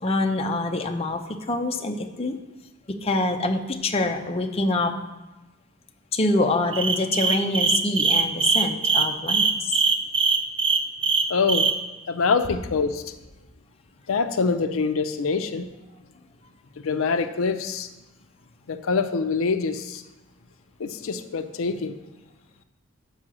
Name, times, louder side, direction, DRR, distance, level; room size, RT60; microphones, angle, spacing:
voice 1, 0.0-2.4 2.9-4.9 6.1-9.8, left 2 dB, 30° left, 3 dB, 0.6 m, -25 dB
sound 1, 6.7-11.7, right 5 dB, 25° right, 0.5 m, -21 dB
voice 2, 11.3-11.7 12.1-13.0 14.1-15.7 16.8-17.9 18.7-20.0 20.8-21.9, left 4 dB, 80° left, 9 dB, 0.5 m, -25 dB
7.4 x 5.6 x 6.1 m, 1.1 s
head